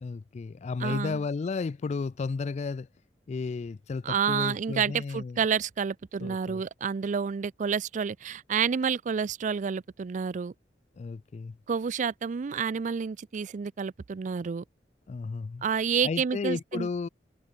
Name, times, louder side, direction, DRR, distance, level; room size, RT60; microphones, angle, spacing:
voice 1, 0.0-2.9 3.3-5.4 6.2-6.6 11.0-11.6 15.1-15.6 16.0-17.1, left 4 dB, 40° left, 0.3 m, -33 dB
voice 2, 0.8-1.2 4.0-10.5 11.7-14.6 15.6-16.9, right 6 dB, 45° right, 0.4 m, -29 dB
head